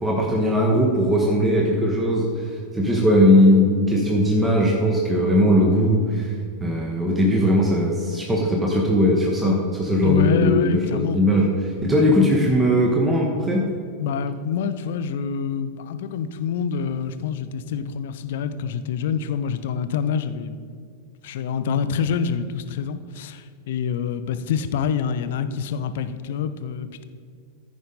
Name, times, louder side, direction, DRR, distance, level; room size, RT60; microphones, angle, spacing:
voice 1, 0.0-6.3 6.6-11.5 11.8-13.6, equal, 10° right, -1 dB, 1.2 m, -19 dB
voice 2, 10.0-11.2 14.0-20.6 21.2-27.0, left 7 dB, 55° left, 11 dB, 0.5 m, -26 dB
14.5 x 5.3 x 4.0 m, 2.2 s
figure-of-eight pair, 90°, 0 cm